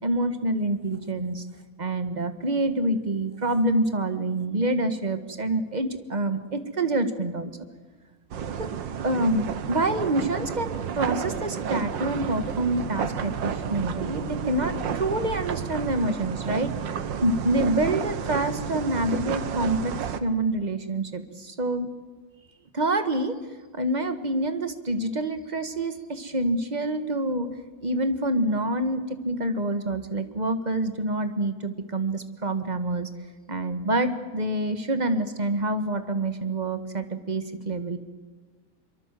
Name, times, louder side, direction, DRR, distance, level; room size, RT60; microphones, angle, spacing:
voice 1, 0.0-1.4 1.8-7.5 8.6-8.7 9.0-16.7 17.2-21.9 22.7-23.3 23.7-27.5 27.8-33.1 33.5-38.0, right 1 dB, 25° right, 9 dB, 1.5 m, -27 dB
sound 1, 8.3-20.2, right 7 dB, 80° right, 1.8 m, -31 dB
23.5 x 23.5 x 7.6 m, 1.4 s
omnidirectional pair, 2.0 m